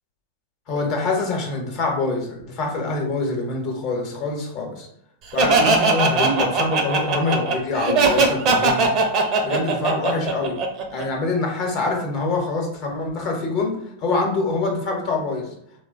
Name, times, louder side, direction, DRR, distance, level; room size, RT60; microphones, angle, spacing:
voice 1, 0.7-4.9 5.3-8.9 9.4-10.6 10.9-15.5, left 3 dB, 45° left, 1 dB, 0.8 m, -25 dB
Laughter, 5.4-11.0, right 3 dB, 45° right, 0.5 m, -19 dB
3.0 x 2.1 x 2.5 m, 0.72 s
hypercardioid pair, 105°, 0 cm